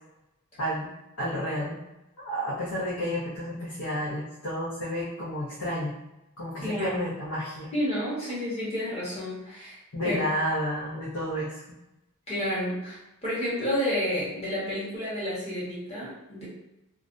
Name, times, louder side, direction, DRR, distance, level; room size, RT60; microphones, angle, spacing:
voice 1, 0.6-0.9 1.2-1.8 2.2-5.9 6.4-7.7 9.9-11.6, equal, 75° left, -9 dB, 0.7 m, -31 dB
voice 2, 6.6-7.0 7.7-9.8 10.0-10.2 12.3-16.5, equal, 30° left, -8 dB, 1.0 m, -30 dB
2.5 x 2.1 x 2.5 m, 0.94 s
head